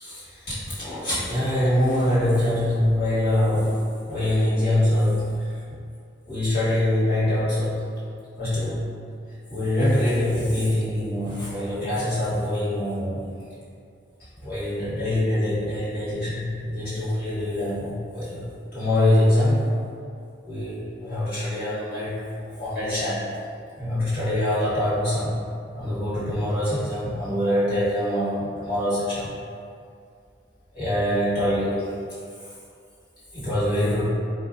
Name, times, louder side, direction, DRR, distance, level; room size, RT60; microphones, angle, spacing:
voice 1, 0.0-3.8 4.1-5.5 6.2-7.8 8.4-8.8 9.5-13.3 14.4-19.6 20.4-23.3 23.8-25.4 25.7-29.3 30.7-31.9 33.3-34.1, left 1 dB, 55° left, -12 dB, 1.5 m, -24 dB
4.2 x 2.6 x 2.3 m, 2.3 s
head